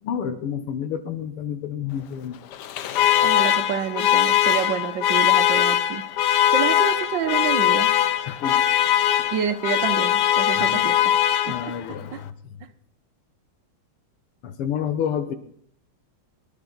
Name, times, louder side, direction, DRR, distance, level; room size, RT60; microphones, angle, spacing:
voice 1, 0.0-2.4 8.3-8.6 9.2-9.3 10.6-10.9 11.5-12.6 14.4-15.3, left 8 dB, 85° left, 10 dB, 1.9 m, -29 dB
Alarm, 2.5-11.9, left 11 dB, 70° left, 1.0 m, -21 dB
voice 2, 3.2-6.0 6.5-7.9 9.3-11.1 11.5-11.7 12.1-12.2, right 8 dB, 65° right, 10 dB, 1.3 m, -28 dB
23.0 x 11.0 x 4.0 m, 0.65 s
omnidirectional pair, 2.4 m